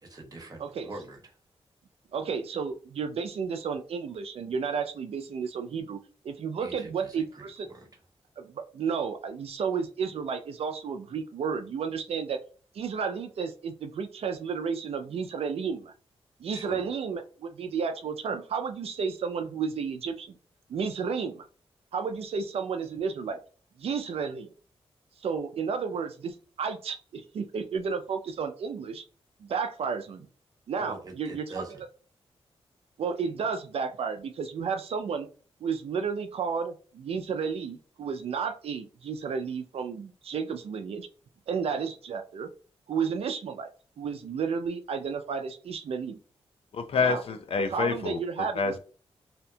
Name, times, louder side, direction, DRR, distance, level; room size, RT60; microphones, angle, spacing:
voice 1, 0.0-1.4 6.6-7.9 16.5-16.9 30.7-31.8, right 2 dB, 35° right, 1.0 m, -44 dB
voice 2, 2.1-6.0 6.2-7.7 8.4-12.4 12.7-15.9 16.4-20.4 20.7-21.5 21.9-23.4 23.8-24.5 25.2-29.0 29.4-30.3 30.7-31.9 33.0-35.3 35.6-41.1 41.5-42.5 42.9-43.7 44.0-46.2 47.0-47.2 47.7-48.7, right 6 dB, 65° right, 0.4 m, -32 dB
voice 3, 46.7-48.2 48.6-48.8, left 4 dB, 60° left, 0.4 m, -27 dB
2.8 x 2.2 x 2.6 m
cardioid pair, 80°, 11 cm